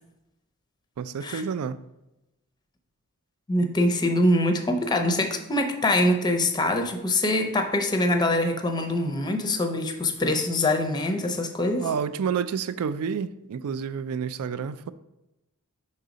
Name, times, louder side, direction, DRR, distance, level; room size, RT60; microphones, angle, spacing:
voice 1, 1.0-1.8 11.8-14.9, right 6 dB, 70° right, 0.3 m, -29 dB
voice 2, 3.5-11.9, left 1 dB, 20° left, 0.5 m, -24 dB
5.5 x 3.9 x 5.0 m
head